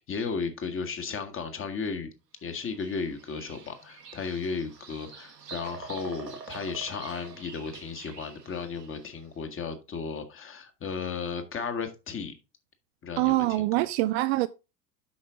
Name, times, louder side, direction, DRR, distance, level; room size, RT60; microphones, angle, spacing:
voice 1, 0.0-2.1 2.4-12.3 13.0-13.9, left 5 dB, 25° left, 1.6 m, -34 dB
Bird vocalization bird call bird song, 2.5-9.2, right 6 dB, 85° right, 1.6 m, -46 dB
voice 2, 13.2-14.5, right 18 dB, 45° right, 0.5 m, -24 dB
8.6 x 5.8 x 3.6 m
figure-of-eight pair, 80°, 47 cm